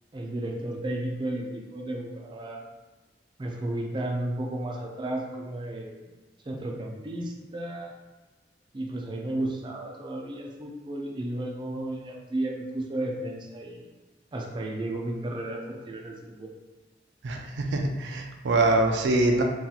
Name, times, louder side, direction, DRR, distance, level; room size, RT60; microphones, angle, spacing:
voice 1, 0.1-2.6 3.4-6.0 6.4-7.9 8.7-13.9 14.3-16.5, right 1 dB, 30° right, 0 dB, 0.4 m, -33 dB
voice 2, 17.2-19.4, right 2 dB, 90° right, 3 dB, 0.4 m, -24 dB
2.8 x 2.3 x 4.0 m, 1.2 s
head